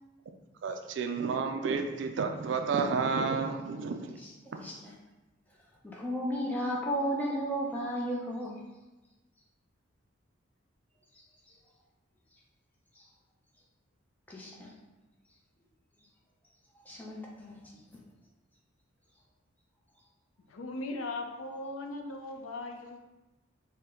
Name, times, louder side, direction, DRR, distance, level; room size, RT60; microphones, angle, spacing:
voice 1, 0.6-4.1, right 5 dB, 60° right, 5 dB, 0.3 m, -31 dB
voice 2, 4.6-4.9 5.8-8.6 13.0-13.1 14.3-14.7 16.9-17.6, equal, 10° left, -4 dB, 0.6 m, -34 dB
voice 3, 20.4-23.1, left 2 dB, 85° left, 3 dB, 0.5 m, -39 dB
4.2 x 2.2 x 3.7 m, 1.1 s
head